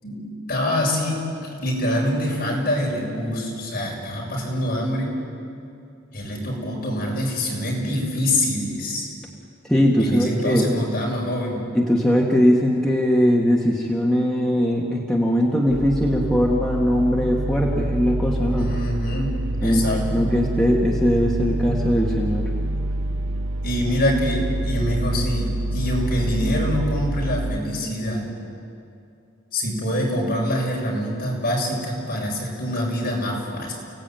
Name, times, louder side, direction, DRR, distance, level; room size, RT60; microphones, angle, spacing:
voice 1, 0.0-1.2 1.6-5.1 6.1-9.1 10.0-11.6 18.6-20.3 23.6-28.3 29.5-33.7, left 1 dB, 45° left, -3 dB, 7.1 m, -25 dB
voice 2, 9.7-10.7 11.7-18.7 19.6-22.5, equal, 5° left, -3 dB, 2.0 m, -20 dB
sound 1, 15.7-27.6, right 1 dB, 80° right, 0.7 m, -26 dB
30.0 x 17.5 x 9.2 m, 2.5 s
head